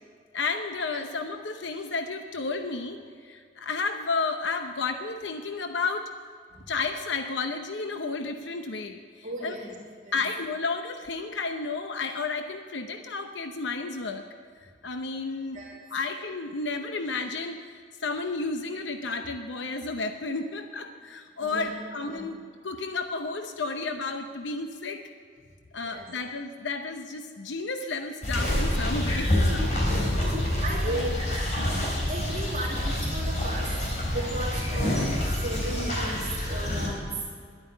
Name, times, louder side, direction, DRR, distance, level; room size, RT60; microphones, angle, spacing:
voice 1, 0.3-6.1 6.7-9.6 10.1-14.3 14.6-22.4 22.6-25.0 25.7-29.7 30.1-30.4 30.9-31.1, left 4 dB, 75° left, 6 dB, 0.8 m, -32 dB
voice 2, 9.2-9.8 10.0-10.2 15.5-15.7 21.4-21.7 22.0-22.2 25.8-26.0 30.6-31.2 32.1-37.3, right 1 dB, 40° right, -4 dB, 2.7 m, -35 dB
sound 1, 28.2-36.9, left 1 dB, 40° left, 4.1 m, -27 dB
11.5 x 9.1 x 9.7 m, 2.1 s
head